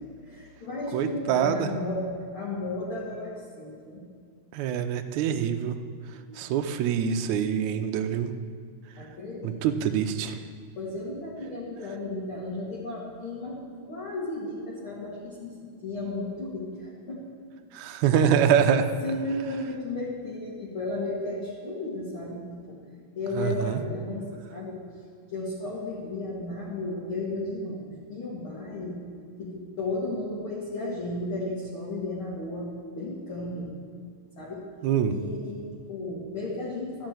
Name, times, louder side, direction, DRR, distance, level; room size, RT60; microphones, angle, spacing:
voice 1, 0.2-4.0 6.1-6.5 9.0-9.6 10.8-13.6 13.8-17.2 18.1-22.8 23.1-24.8 25.3-29.0 29.4-33.7 34.4-34.7 35.1-37.1, left 2 dB, 45° left, -7 dB, 2.4 m, -34 dB
voice 2, 0.9-1.7 4.5-5.8 6.4-8.3 9.4-10.4 17.7-18.8 23.4-23.8 34.8-35.1, right 8 dB, 75° right, 6 dB, 1.9 m, -25 dB
13.0 x 5.6 x 9.0 m, 2.2 s
omnidirectional pair, 3.7 m